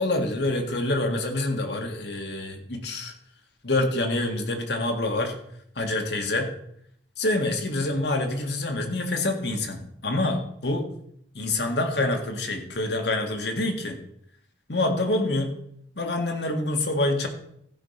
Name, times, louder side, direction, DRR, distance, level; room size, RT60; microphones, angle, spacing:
voice 1, 0.0-3.1 3.6-5.3 5.7-6.5 7.2-10.9 11.3-14.0 14.7-15.5 15.9-17.3, left 2 dB, 65° left, 4 dB, 1.7 m, -26 dB
14.0 x 5.4 x 5.7 m, 0.71 s
head